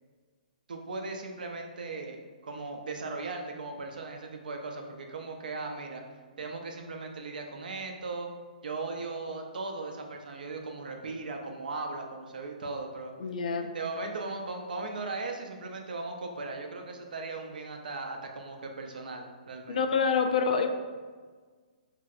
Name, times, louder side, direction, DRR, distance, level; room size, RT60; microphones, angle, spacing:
voice 1, 0.7-2.2 2.4-6.0 6.4-8.3 8.6-13.1 13.6-19.8, right 3 dB, 80° right, 3 dB, 0.5 m, -38 dB
voice 2, 13.2-13.7 19.7-20.7, left 5 dB, 65° left, 6 dB, 0.3 m, -26 dB
3.0 x 2.6 x 2.4 m, 1.5 s
hypercardioid pair, 160°, 5 cm